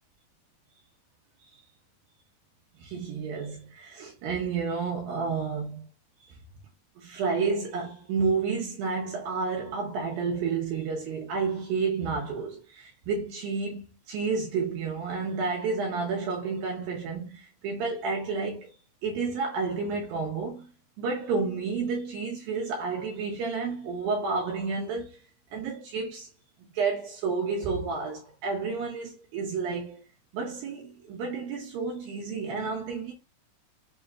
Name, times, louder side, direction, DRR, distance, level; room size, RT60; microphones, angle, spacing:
voice 1, 2.8-5.9 7.0-18.7 19.0-20.7 21.0-25.2 25.5-26.3 26.7-30.0 30.3-33.1, right 4 dB, 75° right, 2.2 m, -30 dB
6.3 x 2.9 x 2.3 m
omnidirectional pair, 4.8 m